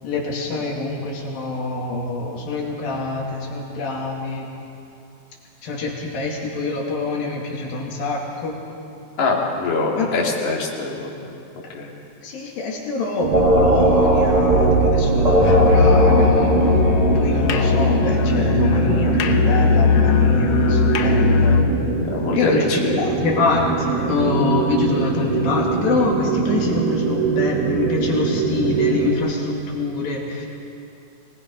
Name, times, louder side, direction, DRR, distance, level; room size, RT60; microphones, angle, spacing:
voice 1, 0.0-4.5 5.6-8.6 10.0-10.1 12.2-16.6 17.2-21.6 22.3-30.5, left 3 dB, 70° left, -2 dB, 4.3 m, -25 dB
voice 2, 9.2-11.3 11.7-11.9 22.1-23.1, left 3 dB, 50° left, -2 dB, 3.7 m, -23 dB
sound 1, 13.2-29.1, right 5 dB, 65° right, 3.2 m, -23 dB
sound 2, 13.3-18.0, right 1 dB, 90° right, 0.3 m, -18 dB
Musical instrument, 15.4-21.7, left 6 dB, 90° left, 1.3 m, -19 dB
24.5 x 19.5 x 5.4 m, 2.7 s
omnidirectional pair, 4.3 m